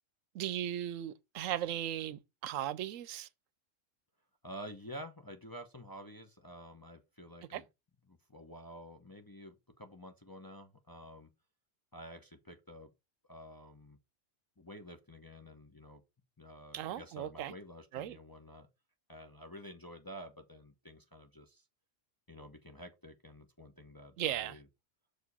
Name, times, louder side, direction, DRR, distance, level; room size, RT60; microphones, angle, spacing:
voice 1, 0.3-3.3 7.5-7.6 16.7-17.5 17.9-18.2 24.2-24.5, right 11 dB, 80° right, 0.9 m, -37 dB
voice 2, 4.4-7.6 8.1-11.3 11.9-12.9 13.3-14.0 14.6-16.0 16.4-18.7 19.1-21.6 22.3-24.7, equal, 20° left, 0.6 m, -50 dB
6.4 x 4.8 x 4.1 m
omnidirectional pair, 1.3 m